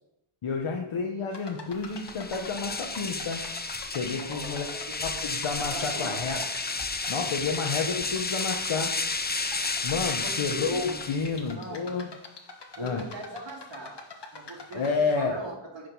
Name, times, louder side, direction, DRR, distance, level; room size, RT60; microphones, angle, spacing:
voice 1, 0.4-3.4 3.9-4.7 5.0-6.4 7.1-8.9 9.8-12.1 12.8-13.0 14.7-15.4, left 4 dB, 70° left, 1 dB, 1.2 m, -30 dB
sound 1, 1.3-14.9, left 4 dB, 55° left, 1.6 m, -45 dB
sound 2, 1.9-11.5, left 3 dB, 20° left, 0.7 m, -32 dB
voice 2, 4.2-5.2 5.7-6.4 10.2-11.1 11.4-12.0 12.8-13.9 14.3-15.9, right 2 dB, 60° right, -1 dB, 2.3 m, -41 dB
9.8 x 5.2 x 5.5 m, 0.84 s
cardioid pair, 55°, 50 cm